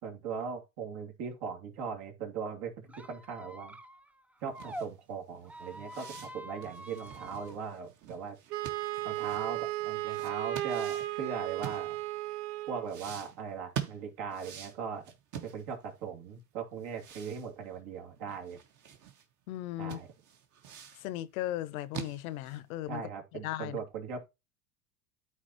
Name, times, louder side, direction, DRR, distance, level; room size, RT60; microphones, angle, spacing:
voice 1, 0.0-3.8 4.4-8.4 9.0-12.0 12.7-15.0 15.4-18.6 19.8-20.1 22.9-24.3, right 6 dB, 55° right, 2.7 m, -39 dB
Squeak, 2.9-4.9 5.4-7.5, equal, 5° right, 0.5 m, -46 dB
sound 1, 4.5-12.3 12.8-16.0 16.3-16.4 16.8-19.2 19.6-19.7 19.9-21.1 21.5-22.7, right 9 dB, 40° right, 1.7 m, -45 dB
Wind instrument woodwind instrument, 8.5-12.9, right 15 dB, 80° right, 0.9 m, -35 dB
voice 2, 19.5-20.0 21.0-23.1 23.4-23.8, left 14 dB, 70° left, 0.9 m, -36 dB
13.0 x 4.4 x 2.9 m
hypercardioid pair, 90°, 45 cm